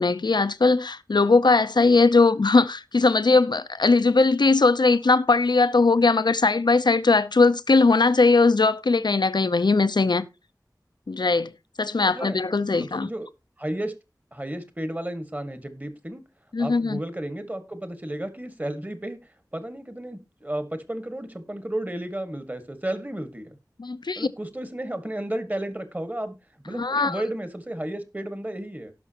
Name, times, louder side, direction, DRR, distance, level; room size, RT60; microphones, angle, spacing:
voice 1, 0.0-10.3 11.1-11.5 11.8-13.1 16.5-17.0 23.8-24.3 26.8-27.2, left 3 dB, 85° left, 0.6 m, -20 dB
voice 2, 12.1-12.4 12.8-13.3 13.6-13.9 14.3-16.2 16.6-23.6 24.1-26.3 26.6-28.9, right 1 dB, 25° right, 1.8 m, -33 dB
18.0 x 6.0 x 2.9 m
wide cardioid pair, 45°, 7 cm